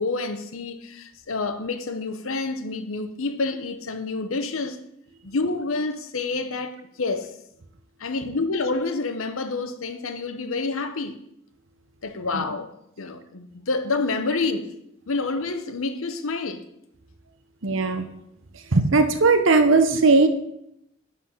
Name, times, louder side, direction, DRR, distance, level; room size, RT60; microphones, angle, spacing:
voice 1, 0.0-4.8 5.2-7.4 8.0-11.2 12.0-12.7 13.0-14.7 15.1-16.6, left 3 dB, 80° left, 0.9 m, -28 dB
voice 2, 17.6-18.0 18.5-20.3, right 3 dB, 65° right, 0.9 m, -18 dB
11.0 x 4.1 x 5.7 m
head